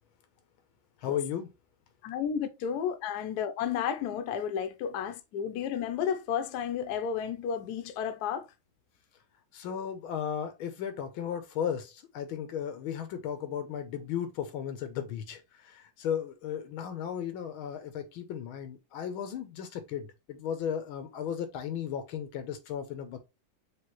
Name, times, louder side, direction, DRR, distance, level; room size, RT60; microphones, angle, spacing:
voice 1, 1.0-1.5 9.5-23.2, left 8 dB, 90° left, 1.6 m, -35 dB
voice 2, 2.0-8.5, left 8 dB, 65° left, 1.0 m, -32 dB
5.0 x 3.3 x 3.0 m
omnidirectional pair, 2.2 m